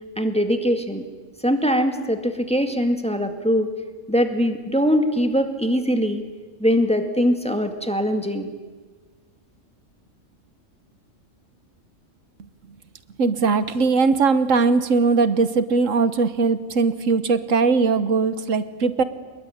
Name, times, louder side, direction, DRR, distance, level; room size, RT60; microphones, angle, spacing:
voice 1, 0.2-1.0 1.4-3.7 4.1-6.2 6.6-8.5, equal, 5° left, 6 dB, 2.1 m, -22 dB
voice 2, 13.2-19.0, right 4 dB, 80° right, 13 dB, 1.5 m, -20 dB
25.5 x 21.5 x 10.0 m, 1.4 s
omnidirectional pair, 1.3 m